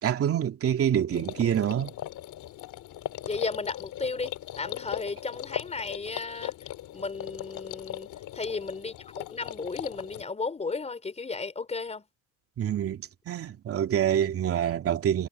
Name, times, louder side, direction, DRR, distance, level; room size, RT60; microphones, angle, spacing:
voice 1, 0.0-1.9 12.6-15.3, right 10 dB, 40° right, 2.5 m, -26 dB
sound 1, 1.1-10.2, left 13 dB, 55° left, 2.5 m, -39 dB
voice 2, 3.2-6.5 6.9-8.1 8.3-12.0, left 4 dB, 20° left, 3.7 m, -34 dB
supercardioid pair, 100°, 35 cm